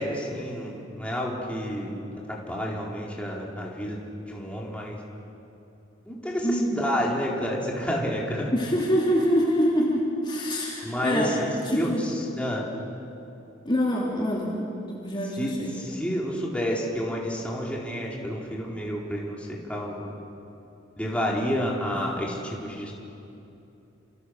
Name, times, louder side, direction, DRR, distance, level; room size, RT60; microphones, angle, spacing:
voice 1, 0.0-2.0 2.3-4.0 4.3-5.0 6.1-8.5 10.8-12.7 15.4-20.1 21.0-22.9, equal, 5° left, -4 dB, 4.2 m, -30 dB
voice 2, 6.4-6.8 8.5-11.3 11.6-12.0 13.6-14.5 14.9-15.7, equal, 25° left, -4 dB, 3.3 m, -25 dB
29.5 x 27.5 x 6.6 m, 2.8 s
head